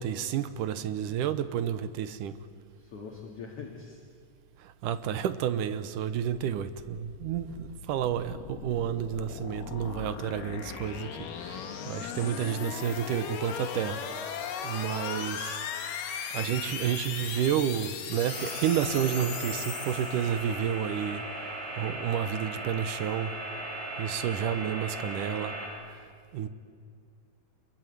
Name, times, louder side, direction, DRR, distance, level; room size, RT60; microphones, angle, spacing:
voice 1, 0.0-2.4 4.6-14.0 14.6-15.6 16.3-21.2 21.8-23.3 24.0-25.5 26.3-26.5, right 9 dB, 70° right, 13 dB, 2.3 m, -30 dB
voice 2, 2.8-4.0 12.1-12.5, left 5 dB, 45° left, 1 dB, 2.7 m, -43 dB
sound 1, 6.6-20.7, left 7 dB, 70° left, 3.2 m, -38 dB
sound 2, 18.3-25.7, right 1 dB, 55° right, 8.1 m, -38 dB
26.5 x 22.5 x 9.3 m, 2.1 s
omnidirectional pair, 4.1 m